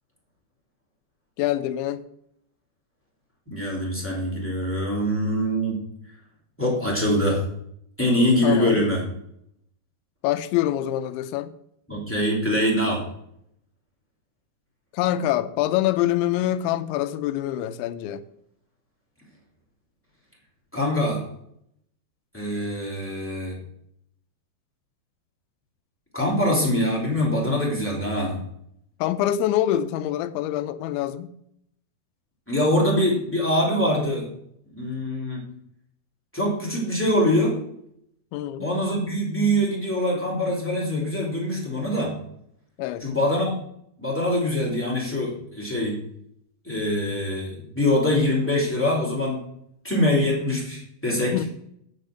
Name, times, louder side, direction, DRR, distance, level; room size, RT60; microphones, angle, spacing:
voice 1, 1.4-2.0 8.4-8.9 10.2-11.5 14.9-18.2 29.0-31.4 38.3-38.7 42.8-43.1 51.3-51.5, left 12 dB, 85° left, 2.9 m, -25 dB
voice 2, 3.5-5.8 6.6-7.4 8.0-9.0 11.9-13.0 20.7-21.2 22.3-23.6 26.1-28.4 32.5-34.3 34.7-35.4 36.3-37.6 38.6-42.1 43.0-43.5 44.0-46.0 46.6-49.4 49.8-51.4, left 1 dB, 5° left, 1.6 m, -23 dB
9.0 x 6.6 x 6.3 m
omnidirectional pair, 5.3 m